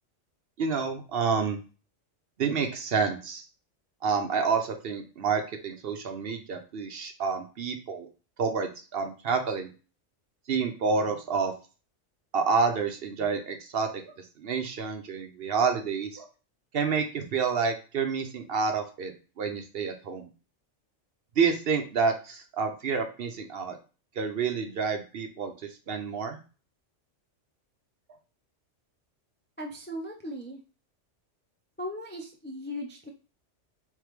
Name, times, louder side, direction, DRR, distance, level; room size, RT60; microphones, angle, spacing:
voice 1, 0.6-1.6 2.4-3.4 4.0-8.1 8.4-9.7 10.5-11.5 12.3-16.3 16.7-19.1 19.4-20.3 21.4-23.8 24.2-25.5 25.9-26.4, right 5 dB, 60° right, 6 dB, 0.8 m, -28 dB
voice 2, 29.6-30.6 31.8-33.1, equal, 15° left, 1 dB, 0.3 m, -37 dB
3.6 x 3.4 x 3.2 m, 0.34 s
omnidirectional pair, 1.3 m